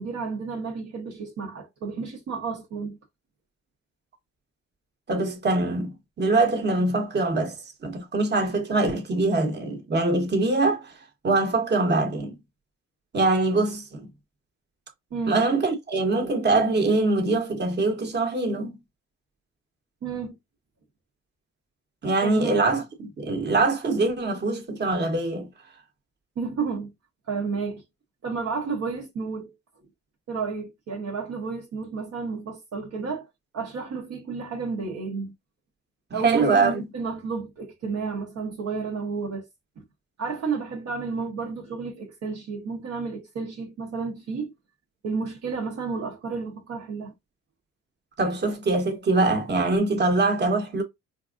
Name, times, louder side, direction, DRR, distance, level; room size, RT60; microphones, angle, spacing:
voice 1, 0.0-3.0 15.1-15.5 20.0-20.4 22.2-22.6 26.4-26.9 27.3-27.8 28.2-29.5 30.3-33.3 33.5-35.3 36.1-39.5 39.8-39.9 40.2-44.5 45.0-47.1, right 4 dB, 55° right, 0.9 m, -31 dB
voice 2, 5.1-7.6 7.8-10.9 11.2-12.4 13.1-14.1 15.3-18.8 22.0-25.5 36.1-36.9 48.2-50.8, right 3 dB, 35° right, 1.1 m, -23 dB
4.5 x 2.5 x 2.4 m
cardioid pair, 90°, 30 cm